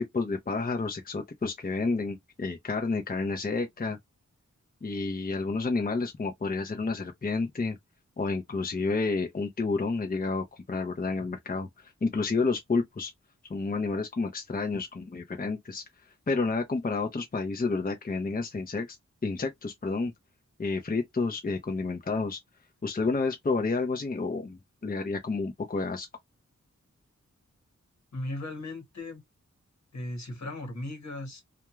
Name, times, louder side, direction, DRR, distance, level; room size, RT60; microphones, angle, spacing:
voice 1, 0.0-4.0 4.8-7.8 8.2-13.1 13.5-15.8 16.3-18.9 19.2-20.1 20.6-22.4 22.8-26.1, left 3 dB, 30° left, 0.6 m, -30 dB
voice 2, 28.1-29.2 29.9-31.4, left 1 dB, 65° left, 1.3 m, -37 dB
2.3 x 2.2 x 3.0 m
wide cardioid pair, 55°, 30 cm